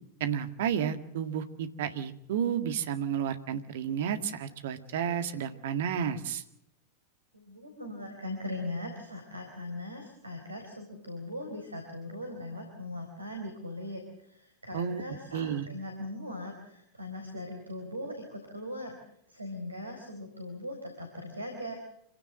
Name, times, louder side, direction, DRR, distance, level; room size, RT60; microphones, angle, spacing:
voice 1, 0.2-6.4 14.7-15.0 15.3-15.7, right 8 dB, 55° right, 10 dB, 1.9 m, -31 dB
voice 2, 7.3-19.0 19.3-21.7, left 1 dB, 80° right, 4 dB, 4.4 m, -40 dB
26.5 x 16.5 x 7.8 m, 0.76 s
figure-of-eight pair, 90°, 0 cm